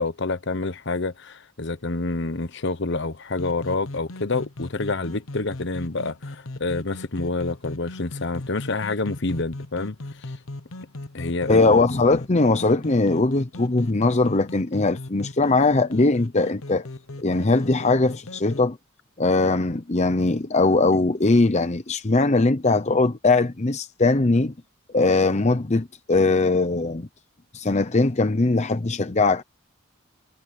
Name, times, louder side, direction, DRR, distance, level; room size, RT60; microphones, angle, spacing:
voice 1, 0.0-10.3 11.1-11.6, left 3 dB, 55° left, 1.1 m, -28 dB
sound 1, 3.4-18.6, left 2 dB, 85° left, 1.1 m, -38 dB
voice 2, 11.5-16.9 17.2-18.8 19.2-24.5 24.9-27.1 27.5-29.4, left 3 dB, 35° left, 0.8 m, -20 dB
head